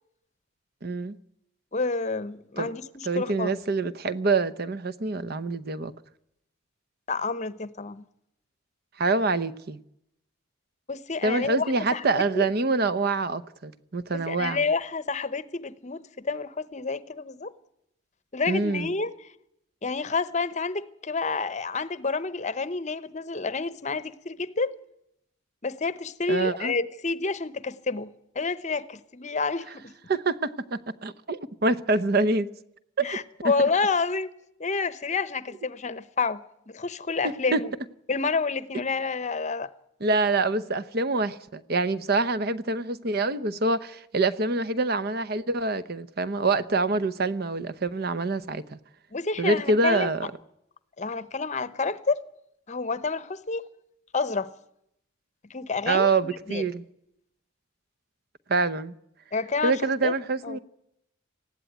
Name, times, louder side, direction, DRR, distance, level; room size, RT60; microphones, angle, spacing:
voice 1, 0.8-1.2 2.6-2.7 3.0-5.9 9.0-9.8 11.2-14.6 18.5-18.9 26.3-26.7 30.1-32.5 33.0-33.1 33.4-33.5 37.5-37.6 40.0-48.8 49.4-50.3 55.9-56.8 58.5-58.9 59.6-60.6, right 3 dB, 50° right, 0.8 m, -26 dB
voice 2, 1.7-3.6 7.1-8.1 10.9-12.5 14.1-17.5 18.3-19.1 19.8-24.7 25.6-29.9 33.0-34.3 34.6-37.7 38.1-39.7 49.1-50.1 51.0-52.2 52.7-53.6 54.1-54.5 55.5-56.6 59.3-60.1 60.4-60.6, left 4 dB, 35° left, 0.8 m, -29 dB
19.0 x 15.0 x 9.3 m
head